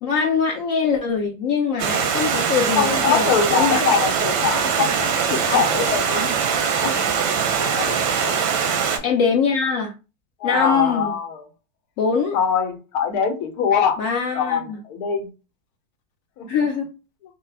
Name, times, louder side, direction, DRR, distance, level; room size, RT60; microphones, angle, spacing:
voice 1, 0.0-3.8 9.0-9.9 10.4-11.1 12.0-12.4 14.0-14.8 16.5-16.9, left 5 dB, 85° left, 0.7 m, -22 dB
Stream, 1.8-9.0, right 6 dB, 90° right, 1.4 m, -22 dB
voice 2, 2.8-6.4 6.8-6.9 7.8-8.4 10.4-11.5 12.3-14.0 14.3-15.3 16.4-16.5, left 7 dB, 65° left, 1.1 m, -23 dB
4.0 x 2.2 x 3.3 m
omnidirectional pair, 2.0 m